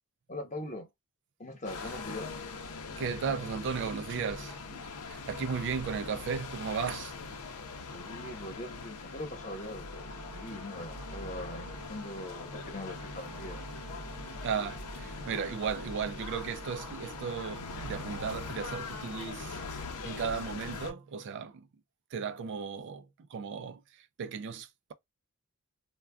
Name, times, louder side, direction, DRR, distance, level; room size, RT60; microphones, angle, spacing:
voice 1, 0.3-0.9 1.4-2.3 7.9-13.6, left 1 dB, 35° left, 0.9 m, -42 dB
sound 1, 1.6-20.9, left 3 dB, 90° left, 0.6 m, -41 dB
voice 2, 3.0-7.2 14.4-19.6 20.0-21.7 22.1-24.9, right 6 dB, 55° right, 0.3 m, -36 dB
Brass instrument, 9.9-18.9, right 4 dB, 90° right, 0.7 m, -53 dB
2.2 x 2.2 x 3.4 m
head